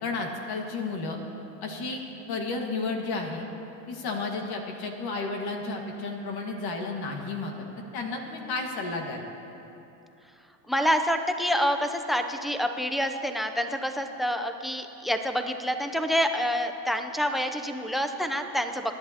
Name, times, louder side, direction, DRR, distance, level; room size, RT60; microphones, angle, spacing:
voice 1, 0.0-1.2 1.6-2.0 2.3-3.5 3.9-7.5 7.9-9.2, left 3 dB, 50° left, 2 dB, 1.8 m, -32 dB
voice 2, 10.7-19.0, equal, ahead, 7 dB, 0.6 m, -27 dB
24.0 x 11.0 x 2.9 m, 2.9 s
supercardioid pair, 110°, 49 cm